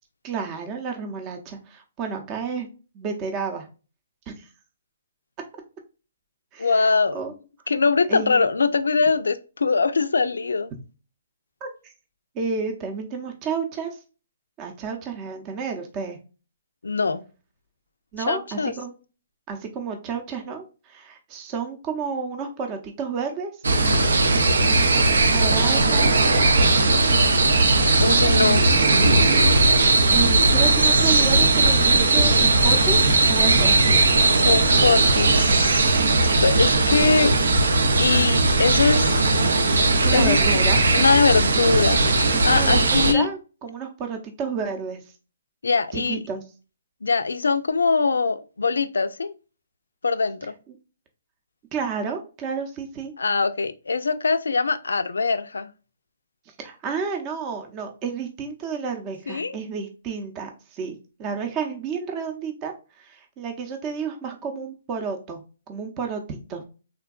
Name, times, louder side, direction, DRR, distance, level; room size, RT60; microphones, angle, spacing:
voice 1, 0.2-2.7 2.9-3.7 4.3-4.5 6.5-7.3 8.1-8.4 11.6-11.9 12.3-14.0 14.6-16.2 18.1-18.9 19.5-23.5 24.6-26.1 28.1-28.6 30.1-34.0 40.0-40.8 42.3-45.0 45.9-46.4 51.7-53.1 56.6-65.4 65.7-66.6, right 5 dB, 25° right, 0.6 m, -31 dB
voice 2, 6.6-7.2 7.7-10.7 16.8-17.2 18.3-18.7 28.0-28.7 34.5-35.5 36.2-37.3 38.0-39.1 40.1-43.3 45.6-46.2 47.0-49.3 50.0-50.5 53.2-55.7 59.3-59.5, left 4 dB, 85° left, 0.3 m, -22 dB
sound 1, 23.6-43.1, right 2 dB, 80° right, 0.5 m, -18 dB
3.5 x 2.2 x 2.3 m
hypercardioid pair, 140°, 0 cm